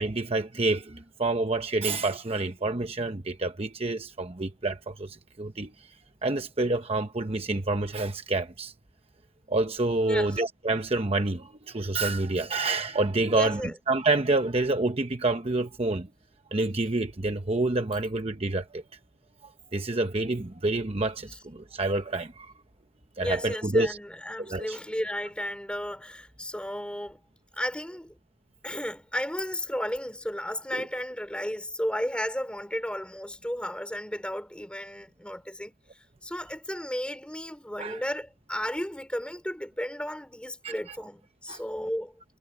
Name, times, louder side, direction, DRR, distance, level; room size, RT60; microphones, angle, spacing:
voice 1, 0.0-5.7 6.2-8.7 9.5-13.6 13.9-16.1 16.5-18.8 19.7-22.5 23.2-24.0 24.4-24.8 30.7-30.8 37.8-38.0 40.6-40.7 41.5-41.6, right 2 dB, 30° right, 0.9 m, -28 dB
voice 2, 10.0-10.4 13.3-13.7 23.2-27.2 27.6-28.1 28.6-35.7 36.2-42.1, equal, 5° left, 3.2 m, -34 dB
head